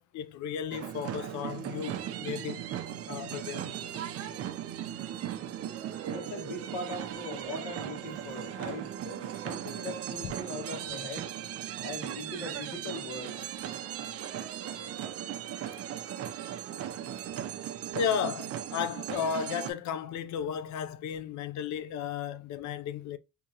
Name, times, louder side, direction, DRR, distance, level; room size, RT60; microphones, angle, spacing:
voice 1, 0.0-2.6 3.1-3.7 17.9-23.2, left 7 dB, 65° left, 0.5 m, -34 dB
sound 1, 0.7-19.7, right 10 dB, 50° right, 0.5 m, -37 dB
voice 2, 6.1-11.3 11.8-13.5, left 2 dB, 80° left, 1.5 m, -40 dB
3.5 x 2.8 x 2.7 m
cardioid pair, 155°, 31 cm